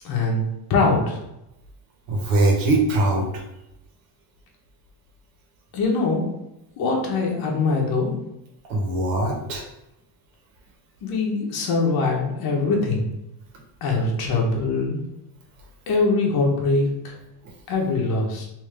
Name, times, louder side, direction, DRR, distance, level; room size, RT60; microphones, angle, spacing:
voice 1, 0.0-1.2 5.7-6.3 6.8-8.2 11.0-13.1 13.8-15.0 15.9-17.1 17.7-18.5, left 3 dB, 50° left, -1 dB, 1.0 m, -22 dB
voice 2, 2.1-3.3 8.7-9.6, right 2 dB, 85° right, 1 dB, 1.2 m, -21 dB
3.5 x 2.8 x 3.3 m, 0.85 s
cardioid pair, 160°, 47 cm